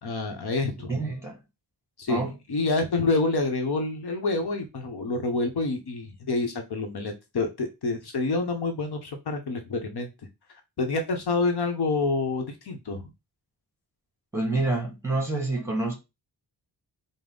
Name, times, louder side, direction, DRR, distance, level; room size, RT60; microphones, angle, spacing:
voice 1, 0.0-1.0 2.0-10.1 10.8-13.1, left 3 dB, 65° left, 0.9 m, -27 dB
voice 2, 0.9-1.4 2.1-2.3 14.3-15.9, right 2 dB, 5° right, 1.4 m, -27 dB
5.2 x 2.0 x 3.8 m
wide cardioid pair, 155°, 42 cm